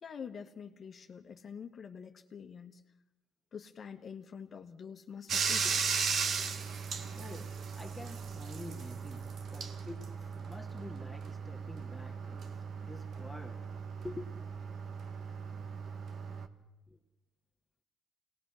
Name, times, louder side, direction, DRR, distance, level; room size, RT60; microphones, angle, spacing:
voice 1, 0.0-2.8 3.5-6.0, left 7 dB, 45° left, 1.4 m, -46 dB
Bathtub (filling or washing), 5.3-16.5, right 6 dB, 50° right, 1.6 m, -37 dB
voice 2, 7.1-13.7 14.0-14.3 16.9-17.0, left 1 dB, ahead, 2.1 m, -48 dB
27.0 x 19.0 x 6.4 m
cardioid pair, 100°, 0 cm